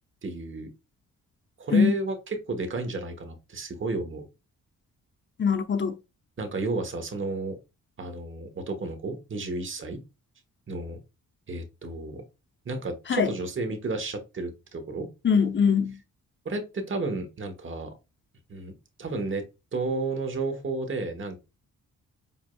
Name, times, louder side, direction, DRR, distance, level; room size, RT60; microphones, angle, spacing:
voice 1, 0.2-0.7 1.6-4.3 6.4-7.6 8.0-10.0 10.7-11.0 11.5-12.2 12.6-15.1 16.4-17.9 18.5-18.7 19.0-19.4 19.7-21.4, right 3 dB, 35° right, 1.1 m, -32 dB
voice 2, 5.4-6.0 13.1-13.3 15.2-16.0, left 6 dB, 35° left, 0.8 m, -22 dB
4.9 x 2.7 x 2.3 m
cardioid pair, 65°, 34 cm